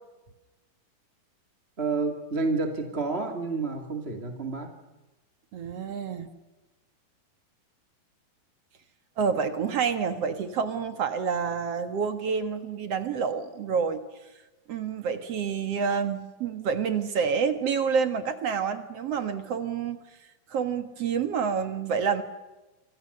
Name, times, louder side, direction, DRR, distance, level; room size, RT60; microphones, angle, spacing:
voice 1, 1.8-4.7, right 3 dB, 20° right, 4 dB, 1.8 m, -29 dB
voice 2, 5.5-6.3 9.2-14.0 14.7-20.0 20.5-22.2, right 6 dB, 55° right, 9 dB, 2.2 m, -28 dB
27.5 x 25.0 x 6.8 m, 1.1 s
omnidirectional pair, 4.0 m